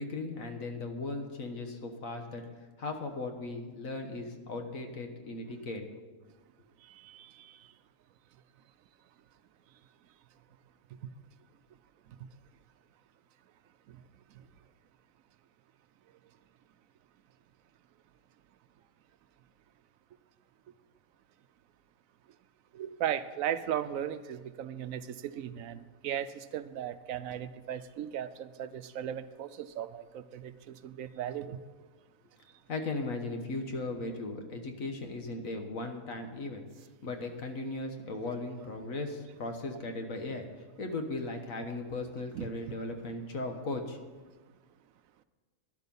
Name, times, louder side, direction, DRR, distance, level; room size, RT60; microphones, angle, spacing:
voice 1, 0.0-2.4 2.8-5.8 32.7-36.6 37.0-40.5 40.8-44.0, left 2 dB, 70° left, 5 dB, 1.7 m, -37 dB
voice 2, 6.8-7.6 22.7-31.6 42.3-42.5, right 10 dB, 75° right, 12 dB, 1.0 m, -37 dB
12.0 x 11.0 x 5.4 m, 1.4 s
omnidirectional pair, 1.5 m